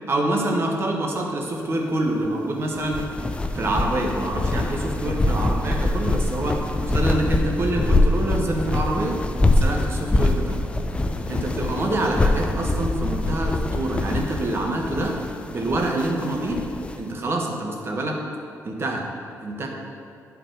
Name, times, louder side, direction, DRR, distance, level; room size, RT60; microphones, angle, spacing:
voice 1, 0.1-3.0 3.5-9.2 9.5-10.6 11.3-15.2 15.5-16.7 16.9-18.2 18.6-19.1 19.4-19.7, right 1 dB, 45° right, 1 dB, 1.1 m, -26 dB
sound 1, 2.8-17.0, left 2 dB, 20° left, 0.4 m, -24 dB
9.6 x 4.7 x 3.8 m, 2.6 s
cardioid pair, 100°, 6 cm